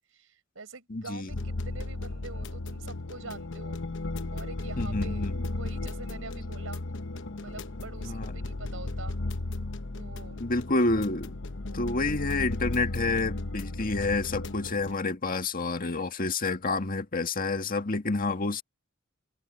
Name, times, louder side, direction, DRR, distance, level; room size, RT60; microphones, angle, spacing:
voice 1, 0.0-3.8 4.3-6.8 7.4-9.2 9.9-10.4, right 3 dB, 70° right, 5.8 m, -45 dB
voice 2, 0.9-1.3 4.8-5.4 8.0-8.3 10.4-11.3 11.7-18.6, left 3 dB, 45° left, 1.8 m, -29 dB
sound 1, 1.3-14.9, left 2 dB, 60° left, 1.0 m, -35 dB
head